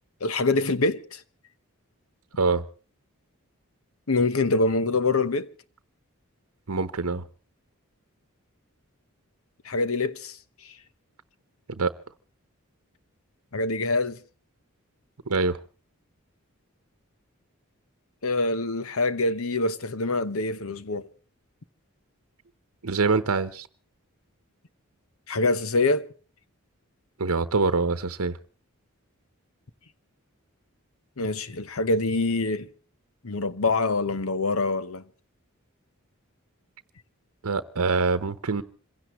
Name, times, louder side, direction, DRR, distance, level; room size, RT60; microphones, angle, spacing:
voice 1, 0.2-1.2 4.1-5.5 9.6-10.4 10.6-10.7 13.5-14.2 18.2-21.1 25.3-26.1 31.2-32.7 33.2-35.0, left 3 dB, 75° left, 1.0 m, -25 dB
voice 2, 6.7-7.2 11.7-11.9 15.3-15.6 22.8-23.7 27.2-28.4 37.4-38.6, right 4 dB, 85° right, 0.9 m, -24 dB
27.0 x 16.5 x 3.1 m
head